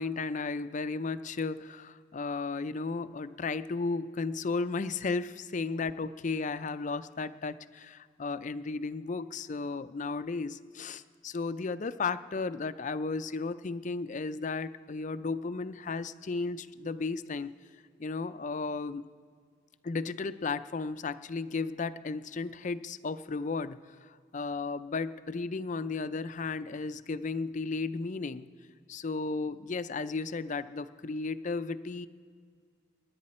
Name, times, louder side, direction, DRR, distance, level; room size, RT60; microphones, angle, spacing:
voice 1, 0.0-17.5 18.0-19.0 19.8-28.5 28.9-32.1, left 4 dB, 45° left, 12 dB, 0.5 m, -34 dB
28.5 x 10.5 x 4.3 m, 2.1 s
head